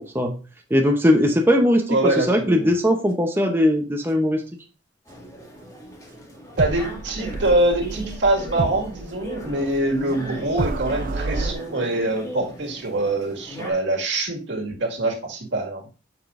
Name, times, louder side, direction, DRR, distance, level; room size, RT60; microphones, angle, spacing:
voice 1, 0.7-4.4, left 1 dB, 10° right, 3 dB, 0.7 m, -19 dB
voice 2, 1.9-2.7 6.6-15.8, right 2 dB, 75° right, 1 dB, 1.9 m, -24 dB
sound 1, 5.1-13.7, equal, 20° left, 2.0 m, -38 dB
sound 2, 6.6-11.5, right 3 dB, 45° right, 0.4 m, -30 dB
8.1 x 6.0 x 2.5 m, 0.33 s
head